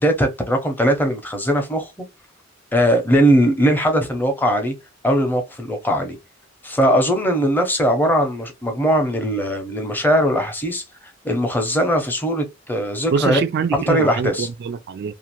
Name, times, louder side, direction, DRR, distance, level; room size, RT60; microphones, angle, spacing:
voice 1, 0.0-1.9 2.7-4.7 5.0-6.2 6.6-13.4 13.9-14.5, equal, 10° left, 0.6 m, -20 dB
voice 2, 13.1-15.1, right 6 dB, 55° right, 0.3 m, -24 dB
2.5 x 2.4 x 2.9 m
head